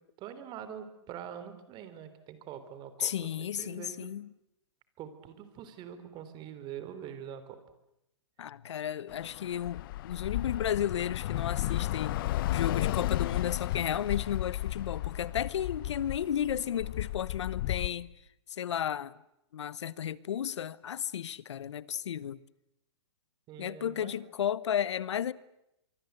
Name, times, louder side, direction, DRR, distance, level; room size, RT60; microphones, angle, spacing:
voice 1, 0.2-4.1 5.0-7.6 23.5-24.1, right 9 dB, 30° right, 3.3 m, -44 dB
voice 2, 3.0-4.3 8.4-12.2 12.5-18.1 18.5-19.2 19.5-22.4 23.6-25.3, left 9 dB, 75° left, 1.0 m, -33 dB
Bus / Traffic noise roadway noise, 9.1-17.9, left 15 dB, 50° left, 1.0 m, -33 dB
25.5 x 24.0 x 8.1 m
hypercardioid pair, 135°, 15 cm